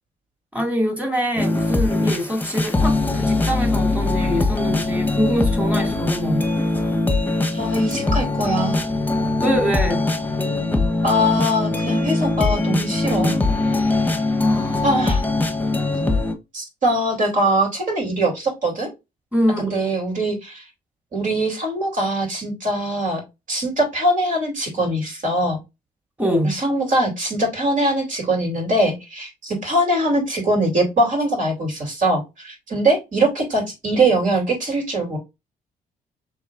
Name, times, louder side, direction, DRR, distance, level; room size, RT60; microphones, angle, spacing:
voice 1, 0.5-6.4 9.4-10.0 14.4-14.9 19.3-19.9 26.2-26.6, equal, 10° right, 2.1 m, -24 dB
sound 1, 1.4-16.3, left 2 dB, 10° left, 1.0 m, -21 dB
voice 2, 7.5-8.8 11.0-13.3 14.8-15.2 16.5-18.9 19.6-20.6 21.1-23.2 23.5-25.6 26.4-35.2, right 1 dB, 55° right, 3.0 m, -22 dB
6.2 x 3.3 x 2.5 m
supercardioid pair, 70°, 16 cm